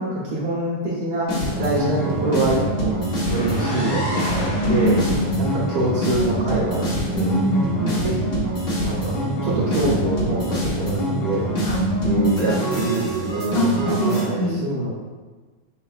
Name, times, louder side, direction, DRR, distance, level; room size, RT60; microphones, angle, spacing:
voice 1, 0.0-5.0 5.4-7.3 7.8-8.4 8.8-11.5 12.0-15.0, right 2 dB, 85° right, -6 dB, 1.8 m, -25 dB
sound 1, 1.3-14.2, right 1 dB, 45° left, 1.5 m, -25 dB
sound 2, 3.2-7.1, equal, 25° left, 1.3 m, -31 dB
voice 2, 4.7-5.5 7.2-8.1 11.7-12.4 13.5-13.7 14.0-14.6, equal, 65° left, -5 dB, 1.6 m, -23 dB
4.9 x 4.2 x 2.4 m, 1.4 s
omnidirectional pair, 2.2 m